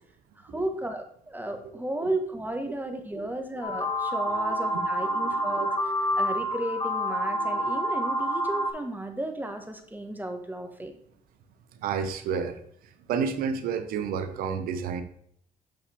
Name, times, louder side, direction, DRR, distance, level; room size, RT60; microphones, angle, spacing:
voice 1, 0.4-5.7 6.2-10.9, right 1 dB, 10° right, 5 dB, 1.5 m, -34 dB
sound 1, 3.6-8.7, equal, 30° left, 1.5 m, -28 dB
voice 2, 5.2-5.7 11.8-12.6 13.1-15.0, right 6 dB, 80° right, 10 dB, 0.8 m, -30 dB
7.1 x 5.8 x 3.5 m, 0.66 s
supercardioid pair, 55°, 15 cm